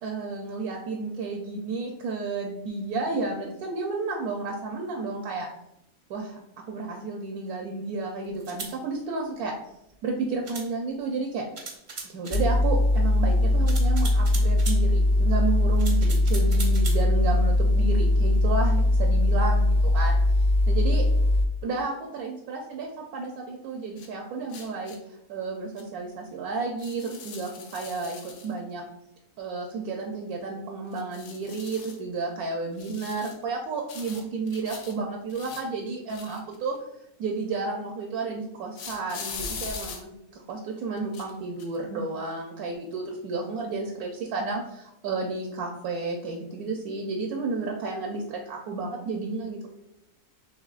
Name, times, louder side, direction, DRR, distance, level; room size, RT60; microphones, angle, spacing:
voice 1, 0.0-5.5 6.1-6.4 6.7-9.5 10.0-11.5 12.0-21.0 21.6-24.9 25.3-28.8 29.4-36.7 37.2-49.7, right 3 dB, 75° right, 1 dB, 1.1 m, -32 dB
sound 1, 8.4-8.7 10.5-10.7 11.6-12.5 13.7-14.8 15.8-17.0, right 4 dB, 45° right, 0.7 m, -38 dB
sound 2, 12.3-21.4, left 1 dB, 50° left, 1.1 m, -21 dB
sound 3, 24.0-24.1 24.5-25.0 25.8-25.9 26.8-28.5 30.9-32.0 32.8-33.4 33.9-34.9 35.3-36.8 38.8-40.0 41.0-41.3 41.6-41.8, left 5 dB, 90° left, 1.3 m, -40 dB
6.1 x 3.3 x 2.4 m, 0.85 s
omnidirectional pair, 1.6 m